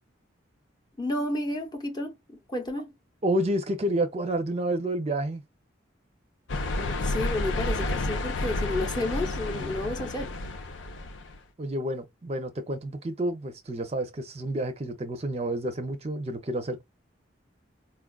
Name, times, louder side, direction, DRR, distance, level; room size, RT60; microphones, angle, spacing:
voice 1, 1.0-2.9 6.8-10.3, left 1 dB, 20° left, 0.6 m, -31 dB
voice 2, 3.2-5.4 11.6-16.8, right 1 dB, 30° right, 0.5 m, -29 dB
sound 1, 6.5-11.4, left 2 dB, 75° left, 0.5 m, -30 dB
4.3 x 2.3 x 2.3 m
head